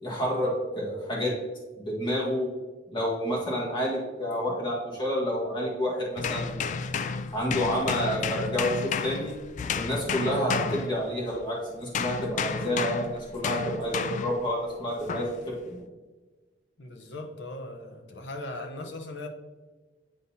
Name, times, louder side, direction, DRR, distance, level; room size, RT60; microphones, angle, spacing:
voice 1, 0.0-1.4 1.8-2.5 2.9-6.7 7.3-9.3 9.7-15.8, equal, 25° left, -4 dB, 1.6 m, -29 dB
sound 1, 6.2-11.5 11.9-14.5 15.1-15.4, left 5 dB, 45° left, 0.3 m, -31 dB
voice 2, 16.8-19.3, left 2 dB, 75° left, 5 dB, 0.9 m, -39 dB
9.6 x 4.0 x 2.8 m, 1.3 s
head